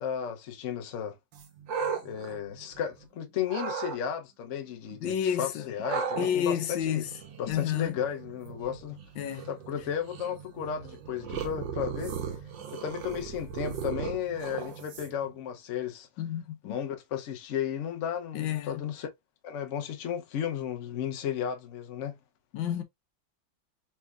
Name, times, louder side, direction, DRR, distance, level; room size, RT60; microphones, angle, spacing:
voice 1, 0.0-1.2 2.0-7.1 7.4-9.0 9.5-12.1 12.7-16.1 16.6-19.1 19.4-22.2, left 8 dB, 60° left, 0.8 m, -34 dB
sound 1, 1.3-3.0 3.5-4.0 5.8-15.3, right 6 dB, 75° right, 1.6 m, -37 dB
voice 2, 5.0-5.7 6.2-7.1 7.5-8.0 9.2-9.5 16.2-16.7 18.3-18.8 22.5-22.8, left 9 dB, 85° left, 1.5 m, -30 dB
4.2 x 3.5 x 2.4 m
omnidirectional pair, 2.1 m